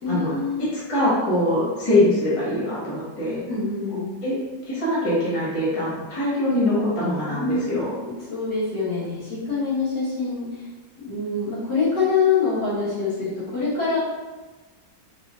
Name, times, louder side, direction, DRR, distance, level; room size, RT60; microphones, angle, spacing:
voice 1, 0.0-0.7 3.5-4.1 7.3-10.7 11.0-14.0, left 4 dB, 65° left, -9 dB, 1.9 m, -25 dB
voice 2, 0.6-3.4 4.2-4.3 4.7-7.9, left 1 dB, 20° left, -8 dB, 1.0 m, -23 dB
4.6 x 3.6 x 2.4 m, 1.2 s
omnidirectional pair, 2.0 m